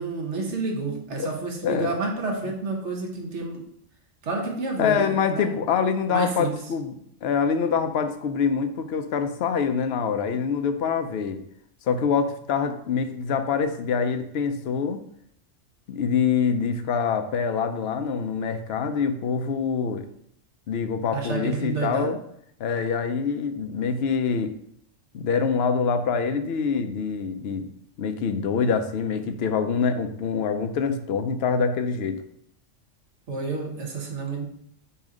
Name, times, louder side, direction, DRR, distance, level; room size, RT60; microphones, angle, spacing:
voice 1, 0.0-3.7 4.2-5.6 6.1-6.5 21.1-22.1 33.3-34.5, right 3 dB, 65° right, 1 dB, 1.5 m, -30 dB
voice 2, 1.6-2.0 4.8-6.9 7.2-11.4 11.9-15.0 15.9-20.1 20.7-22.2 22.6-24.5 25.1-27.7 28.0-32.2, left 6 dB, 60° left, 8 dB, 0.8 m, -25 dB
7.1 x 2.9 x 5.0 m, 0.69 s
omnidirectional pair, 1.3 m